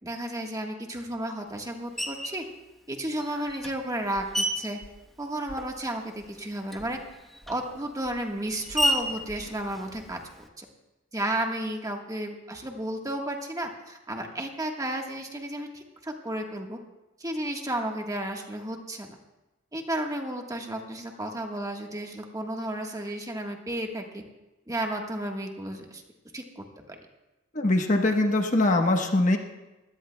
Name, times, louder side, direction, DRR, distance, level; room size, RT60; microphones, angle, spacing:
voice 1, 0.0-2.4 2.9-4.8 5.2-7.0 7.5-10.2 10.6-10.7 11.1-16.8 17.2-19.2 19.7-24.2 24.7-26.0 26.3-26.9, right 1 dB, 20° right, 2 dB, 1.3 m, -33 dB
Screech, 2.0-2.5 3.2-5.9 6.2-10.5, equal, ahead, 1.0 m, -33 dB
voice 2, 27.5-29.4, left 2 dB, 40° left, 4 dB, 1.1 m, -22 dB
23.0 x 17.0 x 2.2 m, 1.0 s
head